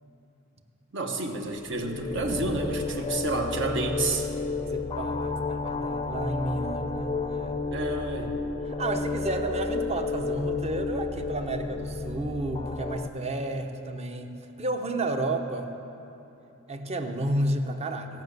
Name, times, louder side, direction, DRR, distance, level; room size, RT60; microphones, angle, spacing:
voice 1, 0.9-4.3 7.7-8.3, right 2 dB, 60° right, 4 dB, 1.1 m, -30 dB
sound 1, 1.5-13.1, left 4 dB, 25° left, 0.5 m, -32 dB
voice 2, 4.7-7.6 8.7-15.7 16.7-18.2, right 2 dB, 30° right, 6 dB, 0.8 m, -31 dB
16.5 x 6.0 x 8.0 m, 2.9 s
head